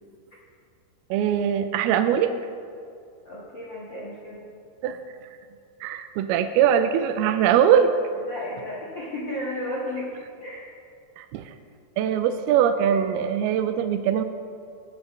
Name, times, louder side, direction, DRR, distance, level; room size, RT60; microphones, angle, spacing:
voice 1, 1.1-2.3 4.8-5.0 5.8-7.9 11.2-11.5 12.0-14.2, right 9 dB, 80° right, 8 dB, 2.3 m, -21 dB
voice 2, 3.2-4.4 8.3-10.1 10.3-10.7, left 1 dB, 75° left, -6 dB, 1.0 m, -33 dB
19.0 x 8.2 x 3.1 m, 2.3 s
omnidirectional pair, 4.7 m